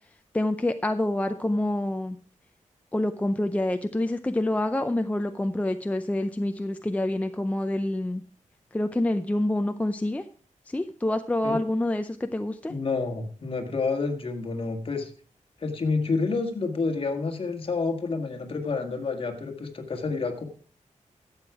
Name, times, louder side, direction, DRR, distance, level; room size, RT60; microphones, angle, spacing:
voice 1, 0.3-2.2 2.9-8.2 8.7-10.2 10.7-12.7, left 1 dB, 10° left, 8 dB, 0.5 m, -27 dB
voice 2, 12.7-15.1 15.6-20.4, left 4 dB, 45° left, 5 dB, 1.8 m, -29 dB
12.0 x 8.0 x 4.8 m, 0.43 s
wide cardioid pair, 160°, 13 cm